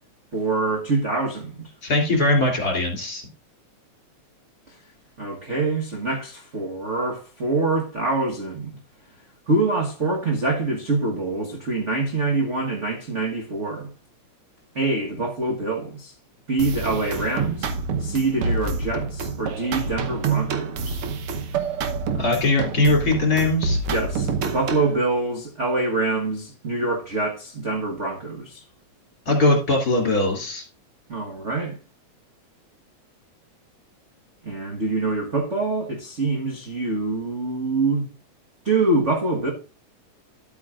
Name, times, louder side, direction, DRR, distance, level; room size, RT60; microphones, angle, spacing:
voice 1, 0.3-1.7 5.2-8.8 9.5-13.9 14.7-16.1 16.5-17.7 18.0-21.0 23.9-28.6 31.1-31.8 34.4-38.1 38.6-39.5, right 3 dB, 45° right, 0.9 m, -25 dB
voice 2, 1.8-3.3 22.2-23.8 29.3-30.6, left 2 dB, 30° left, 3.0 m, -20 dB
sound 1, 16.6-24.9, right 4 dB, 65° right, 1.4 m, -27 dB
12.5 x 8.4 x 2.5 m
omnidirectional pair, 3.4 m